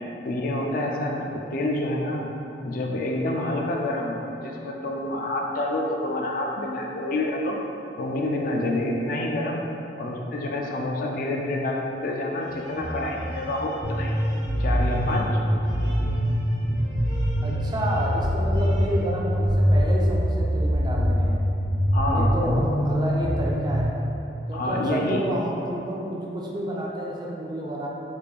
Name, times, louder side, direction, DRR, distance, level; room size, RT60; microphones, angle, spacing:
voice 1, 0.2-2.3 2.6-7.6 8.0-9.6 10.0-14.2 14.6-15.4 21.9-22.7 24.5-25.2, left 1 dB, 50° left, 0 dB, 0.4 m, -28 dB
sound 1, 12.4-19.0, equal, 90° right, 0.9 m, -36 dB
sound 2, 13.8-23.8, equal, 75° left, 0.7 m, -24 dB
voice 2, 17.4-21.4 22.1-23.9 24.5-27.9, right 1 dB, 25° right, -3 dB, 0.4 m, -30 dB
3.4 x 2.4 x 3.4 m, 2.8 s
head